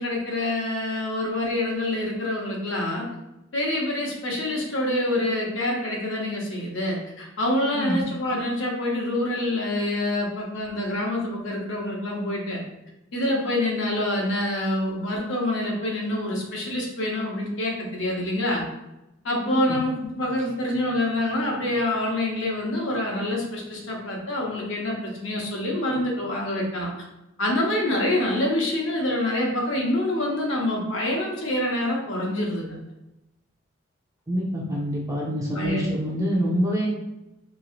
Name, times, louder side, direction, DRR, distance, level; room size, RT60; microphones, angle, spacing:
voice 1, 0.0-3.1 3.5-12.6 13.1-18.6 19.2-26.9 27.4-32.8 35.5-35.9, left 1 dB, 75° left, -2 dB, 0.8 m, -26 dB
voice 2, 7.7-8.0 19.4-19.8 34.3-36.9, equal, 15° right, -4 dB, 0.5 m, -26 dB
3.0 x 2.7 x 2.4 m, 0.94 s
head